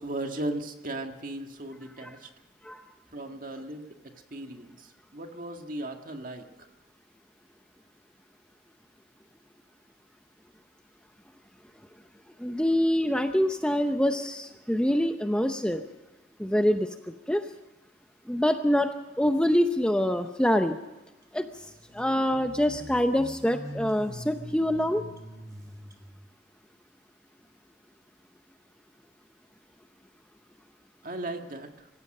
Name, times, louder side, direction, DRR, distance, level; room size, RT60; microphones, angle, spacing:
voice 1, 0.0-2.3 3.1-6.5 31.0-31.9, right 1 dB, 45° right, 4 dB, 1.9 m, -37 dB
voice 2, 12.4-15.8 16.4-16.9 17.3-17.4 18.3-18.9 19.2-20.8 21.3-21.5 21.9-25.0, equal, 5° left, 6 dB, 0.7 m, -25 dB
sound 1, 21.2-21.3 21.6-26.3, equal, 20° right, 1.8 m, -44 dB
25.5 x 15.5 x 6.7 m, 1.1 s
head